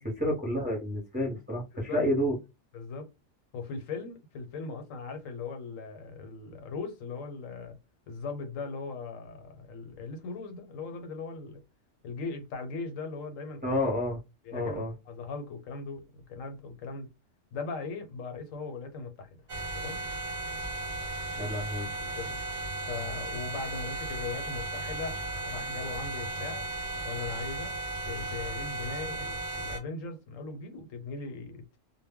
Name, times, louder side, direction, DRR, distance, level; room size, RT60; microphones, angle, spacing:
voice 1, 0.2-2.3 13.6-14.2 14.5-14.9 21.4-21.9, left 1 dB, 10° right, 0.7 m, -29 dB
voice 2, 2.7-3.1 3.5-7.8 8.1-11.6 12.0-13.8 14.4-17.1 17.5-19.4 19.7-20.0 22.0-22.4 22.9-26.7 27.0-27.8 28.1-31.8, left 4 dB, 85° left, 1.1 m, -39 dB
sound 1, 19.5-29.8, right 2 dB, 45° right, 0.8 m, -35 dB
2.1 x 2.1 x 3.5 m
omnidirectional pair, 1.3 m